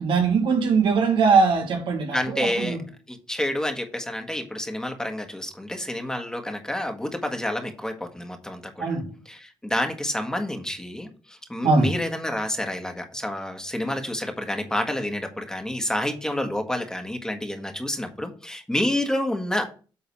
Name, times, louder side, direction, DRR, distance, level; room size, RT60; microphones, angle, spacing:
voice 1, 0.0-2.8 8.8-9.1 11.6-11.9, right 4 dB, 80° right, 1.8 m, -21 dB
voice 2, 2.1-2.8 3.1-9.0 9.2-11.1 11.5-19.7, left 1 dB, 10° left, 1.6 m, -29 dB
8.5 x 3.9 x 6.1 m
cardioid pair, 95°, 8 cm